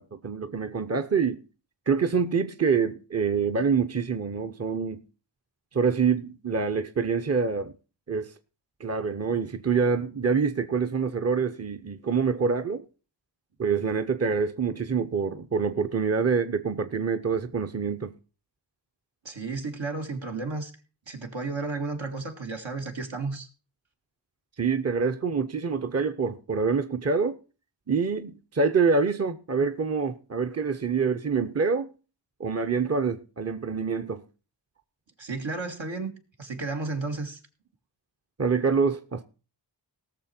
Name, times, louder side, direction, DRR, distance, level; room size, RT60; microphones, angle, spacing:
voice 1, 0.0-1.4 1.9-5.0 5.7-7.7 8.1-8.3 8.8-12.8 13.6-18.1 24.6-27.4 27.9-31.9 32.4-34.2 38.4-39.2, right 5 dB, 35° right, 0.8 m, -26 dB
voice 2, 19.2-20.7 21.1-23.5 35.2-36.1 36.4-37.4, right 3 dB, 80° right, 2.1 m, -33 dB
18.5 x 6.7 x 4.4 m
wide cardioid pair, 50°, 45 cm